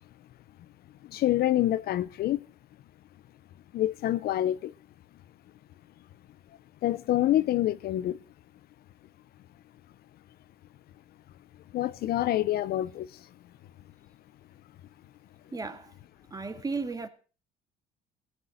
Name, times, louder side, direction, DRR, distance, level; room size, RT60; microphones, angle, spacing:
voice 1, 1.1-2.4 3.7-4.7 6.8-8.2 11.7-13.1, left 13 dB, 65° left, 0.7 m, -26 dB
voice 2, 15.5-15.9 16.3-17.1, right 4 dB, 20° right, 1.9 m, -34 dB
17.0 x 6.9 x 7.8 m
cardioid pair, 110°, 17 cm